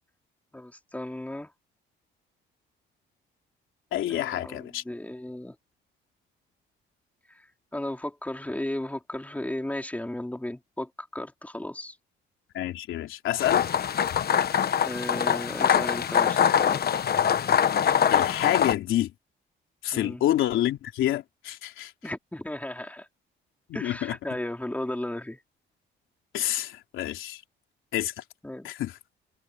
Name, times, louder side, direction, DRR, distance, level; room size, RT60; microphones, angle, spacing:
voice 1, 0.5-1.5 4.1-5.6 7.7-12.0 14.8-16.8 19.9-20.2 22.0-23.1 23.7-25.4 28.4-28.7, left 1 dB, 5° left, 3.9 m, -35 dB
voice 2, 3.9-4.8 12.5-13.7 18.1-19.1 19.8-21.9 23.7-24.2 26.3-27.4 27.9-28.2 28.6-29.0, left 13 dB, 85° left, 3.5 m, -28 dB
sound 1, 13.4-18.7, left 8 dB, 50° left, 1.2 m, -23 dB
cardioid pair, 90°, 20 cm